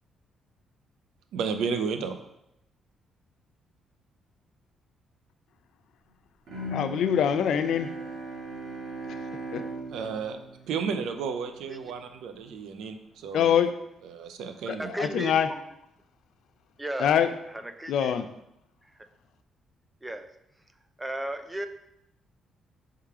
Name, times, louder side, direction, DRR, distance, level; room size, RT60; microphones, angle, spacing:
voice 1, 1.3-2.2 9.9-10.4 10.7-13.6 14.0-14.9, right 6 dB, 85° right, 7 dB, 0.6 m, -32 dB
Bowed string instrument, 6.5-11.5, right 1 dB, 60° right, 2.5 m, -38 dB
voice 2, 6.7-7.9 9.1-9.2 9.5-9.6 13.3-13.7 15.0-15.5 17.0-17.3 17.9-18.3, left 9 dB, 75° left, 10 dB, 0.5 m, -24 dB
voice 3, 14.7-15.6 16.8-17.2 17.5-18.2 18.8-18.9 20.0-20.3 21.0-21.7, right 1 dB, 15° right, 8 dB, 0.5 m, -35 dB
5.6 x 3.8 x 4.8 m, 0.81 s
cardioid pair, 90°, 0 cm